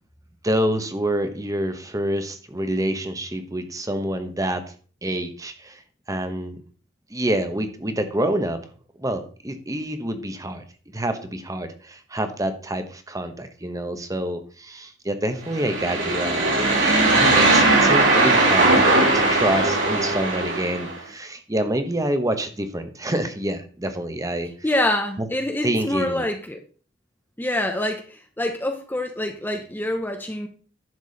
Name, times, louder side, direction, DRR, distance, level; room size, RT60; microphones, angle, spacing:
voice 1, 0.4-4.7 5.0-5.8 6.1-6.6 7.1-8.6 9.0-10.6 10.9-16.4 16.7-24.5 25.2-25.3 25.6-26.2, right 1 dB, 20° right, 8 dB, 1.1 m, -27 dB
sound 1, 15.5-20.9, right 2 dB, 70° right, 4.1 m, -19 dB
voice 2, 24.6-26.6 27.4-30.5, left 1 dB, 10° left, 4 dB, 0.8 m, -26 dB
11.0 x 7.1 x 4.1 m, 0.40 s
head